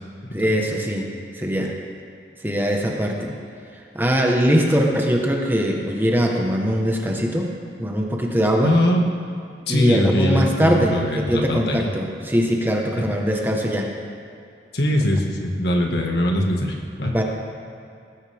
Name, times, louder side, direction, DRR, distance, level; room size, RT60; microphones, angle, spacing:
voice 1, 0.3-1.1 1.4-1.7 2.4-3.3 3.9-7.5 7.8-8.8 9.7-13.9 17.0-17.2, equal, 10° right, 0 dB, 1.3 m, -21 dB
voice 2, 8.6-9.1 9.7-11.9 14.7-17.2, left 1 dB, 70° left, 1 dB, 1.9 m, -22 dB
20.0 x 14.5 x 3.6 m, 2.4 s
head